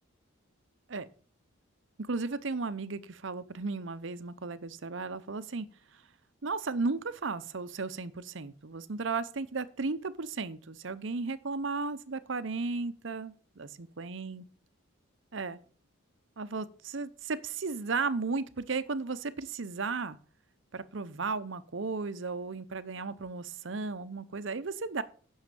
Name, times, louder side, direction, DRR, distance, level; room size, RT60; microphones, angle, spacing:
voice 1, 2.1-5.7 6.4-14.5 15.3-15.6 16.4-20.2 20.7-25.0, right 4 dB, 60° right, 0.7 m, -35 dB
9.6 x 6.4 x 6.8 m
head